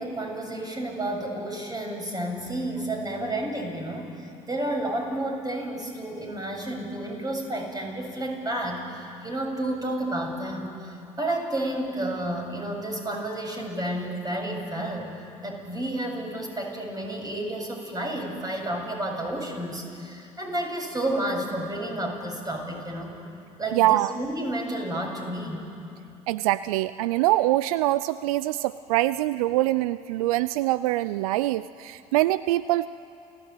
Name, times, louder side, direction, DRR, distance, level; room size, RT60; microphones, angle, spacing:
voice 1, 0.0-15.1 15.4-23.1 23.6-25.7, right 1 dB, 20° right, 1 dB, 7.4 m, -31 dB
voice 2, 23.7-24.1 26.3-32.9, right 16 dB, 80° right, 17 dB, 0.5 m, -24 dB
28.5 x 17.0 x 9.1 m, 2.7 s
hypercardioid pair, 60°, 18 cm